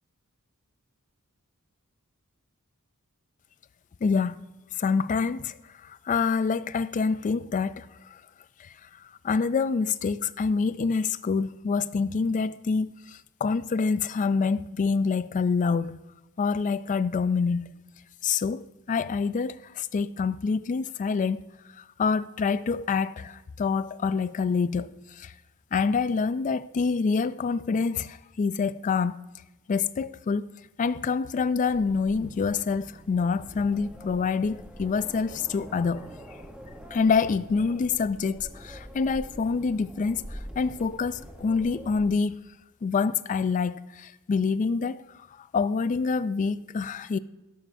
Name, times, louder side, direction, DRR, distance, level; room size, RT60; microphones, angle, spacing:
voice 1, 4.0-4.3 4.8-5.5 6.1-7.9 8.6-8.7 9.2-16.0 16.4-17.7 18.2-21.4 22.0-24.9 25.2-25.3 25.7-29.2 29.7-30.5 30.8-36.1 36.9-42.4 42.8-45.0 45.5-47.2, left 5 dB, 35° left, 0.3 m, -26 dB
sound 1, 31.6-42.1, equal, 5° right, 0.9 m, -45 dB
12.5 x 11.5 x 2.6 m
head